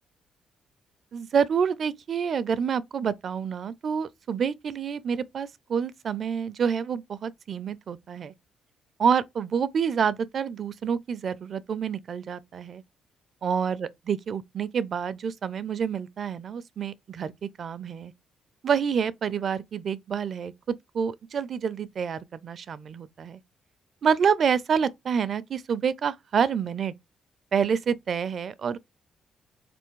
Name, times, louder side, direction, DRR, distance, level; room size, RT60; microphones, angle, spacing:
voice 1, 1.1-8.3 9.0-12.8 13.4-18.1 18.6-23.4 24.0-26.9 27.5-28.8, right 7 dB, 55° right, 0.4 m, -28 dB
3.9 x 3.4 x 3.0 m
cardioid pair, 90°, 0 cm